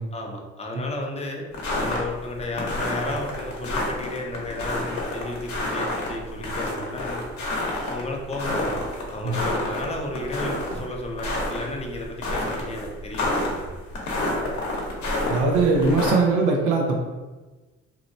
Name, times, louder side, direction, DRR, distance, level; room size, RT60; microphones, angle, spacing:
voice 1, 0.1-1.4 1.8-7.2 7.9-8.8 9.1-13.7, left 1 dB, 20° left, 0 dB, 0.5 m, -33 dB
sound 1, 1.5-16.1, left 1 dB, 70° left, 0.8 m, -29 dB
voice 2, 15.3-17.0, right 3 dB, 80° right, 0 dB, 0.7 m, -21 dB
2.8 x 2.0 x 2.6 m, 1.2 s
cardioid pair, 90°, 30 cm